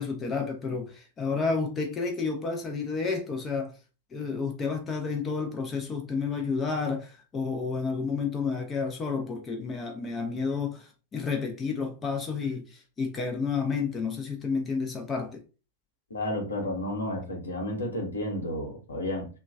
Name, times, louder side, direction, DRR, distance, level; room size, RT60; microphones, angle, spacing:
voice 1, 0.0-3.8 4.1-15.4, left 5 dB, 20° left, 0.5 m, -30 dB
voice 2, 16.1-19.3, left 1 dB, 75° left, 0.9 m, -32 dB
3.0 x 2.2 x 2.4 m
figure-of-eight pair, 90°, 0 cm